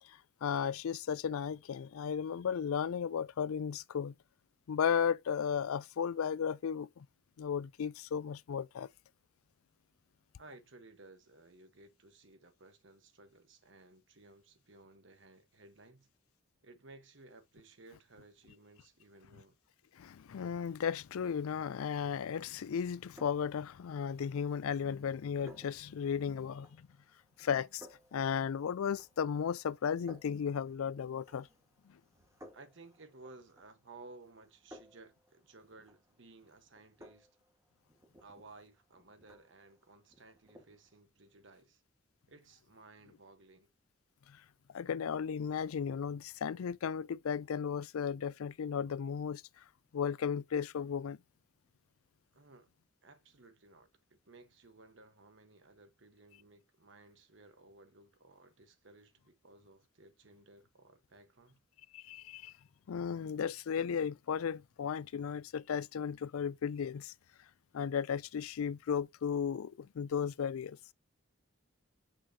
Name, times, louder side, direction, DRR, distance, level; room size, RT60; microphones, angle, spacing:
voice 1, 0.0-4.2 4.7-7.1 7.4-8.9 19.9-26.9 27.4-31.5 31.8-32.0 44.3-51.2 61.9-62.6 62.9-67.1 67.4-70.8, left 7 dB, 85° left, 0.4 m, -35 dB
voice 2, 10.4-16.1 16.6-19.6 32.5-37.3 38.2-41.8 42.3-43.7 52.3-52.7 53.0-61.6, right 3 dB, 60° right, 1.2 m, -58 dB
sound 1, 22.8-41.0, equal, 15° right, 1.5 m, -61 dB
6.5 x 6.0 x 2.8 m
head